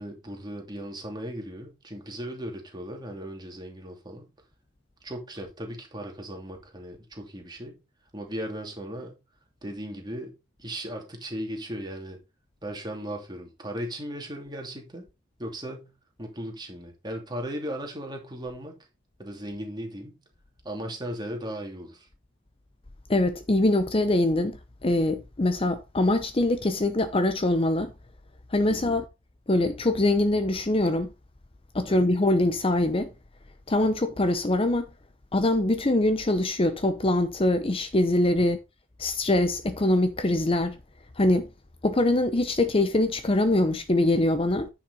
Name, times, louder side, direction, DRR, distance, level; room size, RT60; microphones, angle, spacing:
voice 1, 0.0-4.3 5.0-7.8 8.1-9.2 9.6-10.3 10.6-12.2 12.6-15.1 15.4-15.9 16.2-18.8 19.2-20.2 20.6-22.1 28.7-29.0 31.9-32.0, equal, 20° right, 2.7 m, -37 dB
voice 2, 23.1-27.9 28.5-29.1 29.5-31.1 31.7-33.1 33.7-34.8 35.3-38.6 39.0-40.8 41.2-41.5 41.8-44.7, left 1 dB, 30° left, 0.7 m, -23 dB
10.0 x 5.9 x 4.1 m
head